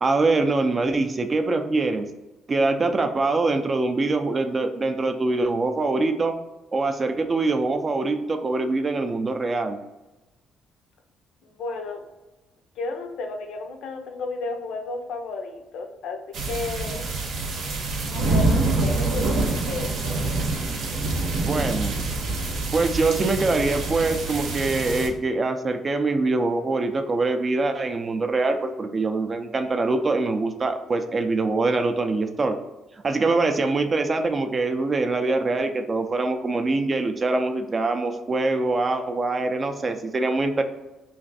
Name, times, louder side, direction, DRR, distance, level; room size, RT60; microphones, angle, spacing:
voice 1, 0.0-2.1 2.5-6.3 6.7-9.8 21.4-22.0 22.7-32.6 33.0-40.6, right 3 dB, 30° right, 6 dB, 0.4 m, -24 dB
voice 2, 11.4-12.0 12.8-16.2 16.4-17.0 18.1-20.2, left 3 dB, 75° left, 4 dB, 0.5 m, -33 dB
sound 1, 16.3-25.1, right 2 dB, 70° right, 0.7 m, -26 dB
3.1 x 2.5 x 4.0 m, 1.1 s
cardioid pair, 120°, 0 cm